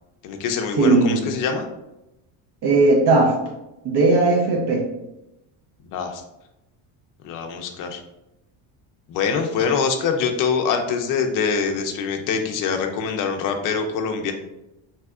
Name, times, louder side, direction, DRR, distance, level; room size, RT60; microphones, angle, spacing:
voice 1, 0.2-1.7 5.9-6.2 7.2-8.0 9.1-14.3, left 6 dB, 45° left, 5 dB, 0.4 m, -24 dB
voice 2, 0.8-1.3 2.6-3.3 3.8-4.9, right 3 dB, 55° right, 1 dB, 0.6 m, -17 dB
3.3 x 2.8 x 2.3 m, 0.91 s
cardioid pair, 140°, 48 cm